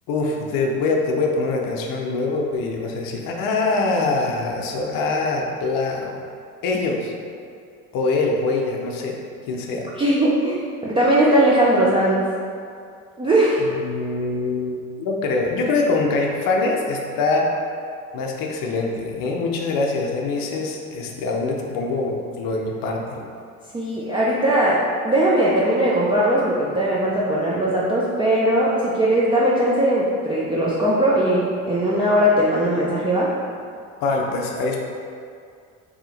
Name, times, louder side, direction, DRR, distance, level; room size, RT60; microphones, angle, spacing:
voice 1, 0.1-6.2 6.6-7.1 7.9-9.2 9.5-9.9 13.7-17.5 18.1-23.3 34.0-34.8, left 3 dB, 55° left, 1 dB, 0.6 m, -24 dB
voice 2, 10.0-12.2 13.2-13.6 23.7-33.3, right 1 dB, 15° right, -7 dB, 0.4 m, -19 dB
2.7 x 2.4 x 3.9 m, 2.3 s
hypercardioid pair, 60°, 42 cm